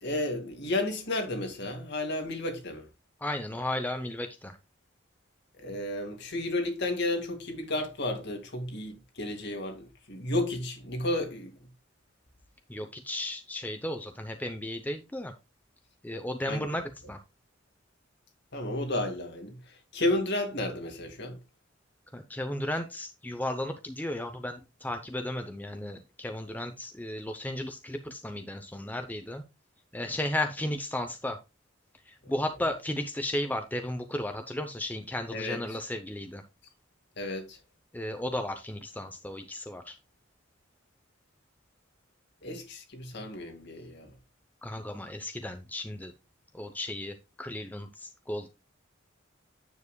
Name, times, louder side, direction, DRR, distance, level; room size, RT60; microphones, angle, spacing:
voice 1, 0.0-2.9 5.6-11.5 16.5-16.7 18.5-19.6 19.9-21.4 35.3-35.6 37.2-37.6 42.4-44.1, left 1 dB, 60° left, 2.1 m, -32 dB
voice 2, 3.2-4.6 12.7-15.3 16.0-17.2 22.1-29.4 29.9-31.4 32.1-36.4 37.9-40.0 44.6-46.1 46.5-48.5, left 1 dB, 10° left, 0.7 m, -34 dB
9.6 x 7.3 x 2.3 m
head